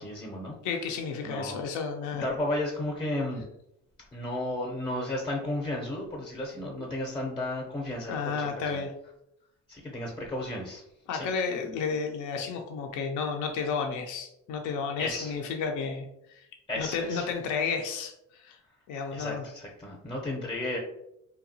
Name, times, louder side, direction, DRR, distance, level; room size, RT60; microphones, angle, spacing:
voice 1, 0.0-0.5 1.2-1.7 2.2-3.4 4.1-8.8 9.7-10.8 11.1-11.3 15.0-15.3 16.7-17.3 19.1-20.8, left 1 dB, 15° left, -1 dB, 0.5 m, -33 dB
voice 2, 0.6-2.2 8.1-8.9 11.1-16.5 16.8-18.6 18.9-19.4, left 5 dB, 80° left, 4 dB, 0.5 m, -32 dB
2.8 x 2.2 x 2.6 m, 0.81 s
cardioid pair, 90°, 30 cm